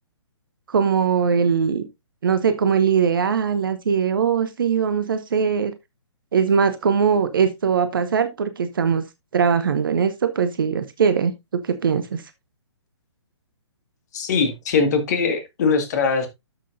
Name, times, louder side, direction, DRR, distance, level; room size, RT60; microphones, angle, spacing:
voice 1, 0.7-1.8 2.2-5.7 6.3-9.0 9.3-12.2, right 6 dB, 50° right, 0.9 m, -21 dB
voice 2, 14.1-16.3, left 4 dB, 35° left, 2.0 m, -21 dB
12.5 x 6.2 x 2.6 m
figure-of-eight pair, 130°, 15 cm